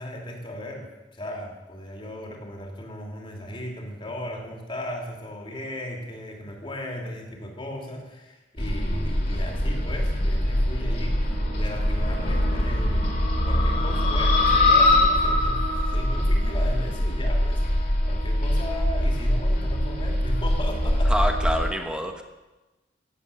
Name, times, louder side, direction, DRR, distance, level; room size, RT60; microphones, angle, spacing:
voice 1, 0.0-13.2 13.5-21.3, left 1 dB, 30° left, 1 dB, 2.9 m, -36 dB
sound 1, 8.6-21.7, left 1 dB, 55° left, 3.4 m, -23 dB
voice 2, 21.1-22.2, equal, 5° right, 4 dB, 1.1 m, -26 dB
16.0 x 8.2 x 8.5 m, 1.1 s
head